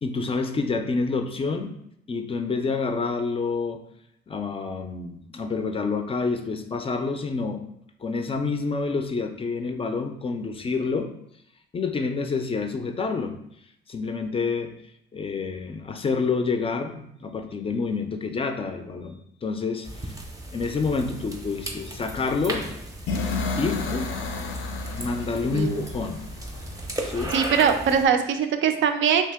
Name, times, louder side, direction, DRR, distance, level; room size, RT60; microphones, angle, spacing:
voice 1, 0.0-1.8 2.1-3.8 4.3-7.7 8.0-11.1 11.7-13.4 13.9-14.7 15.1-20.2 20.5-22.7 23.6-24.1 25.0-26.3 27.0-27.4, left 4 dB, 30° left, 7 dB, 0.4 m, -28 dB
sound 1, 19.8-28.1, right 1 dB, 15° right, 0.6 m, -36 dB
sound 2, 23.1-27.0, left 3 dB, 90° left, 0.5 m, -31 dB
voice 2, 25.5-25.8 27.3-29.3, right 7 dB, 70° right, 7 dB, 0.4 m, -22 dB
2.8 x 2.8 x 3.4 m, 0.74 s
cardioid pair, 90°, 20 cm